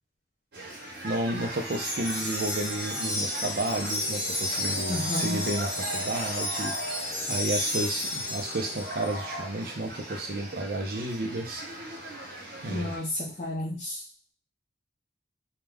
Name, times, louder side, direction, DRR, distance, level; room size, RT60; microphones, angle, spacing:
sound 1, 0.5-13.0, right 1 dB, 75° right, 1.0 m, -41 dB
voice 1, 1.0-6.7 7.3-11.9 12.6-13.0, right 1 dB, 55° right, 2 dB, 0.6 m, -32 dB
sound 2, 1.2-9.5, equal, 75° left, 0.7 m, -41 dB
Wind chime, 1.6-9.1, left 1 dB, ahead, 0.7 m, -32 dB
voice 2, 4.9-5.4 12.7-14.0, left 2 dB, 45° left, -4 dB, 0.5 m, -32 dB
2.3 x 2.2 x 3.4 m, 0.33 s
head